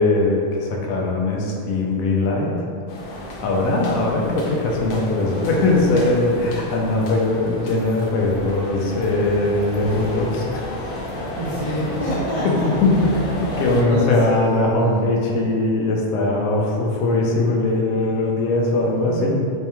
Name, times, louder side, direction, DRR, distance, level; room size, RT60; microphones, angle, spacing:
voice 1, 0.0-2.6 3.1-10.7 12.4-12.6 12.8-13.1 13.4-19.3, left 2 dB, 80° left, -1 dB, 1.0 m, -20 dB
sound 1, 2.9-13.8, left 1 dB, 65° left, 0.5 m, -32 dB
voice 2, 3.4-3.8 11.3-12.7 13.8-15.3 17.9-18.0 18.7-19.3, right 1 dB, 40° right, -10 dB, 0.4 m, -28 dB
3.3 x 3.3 x 2.9 m, 2.4 s
omnidirectional pair, 1.5 m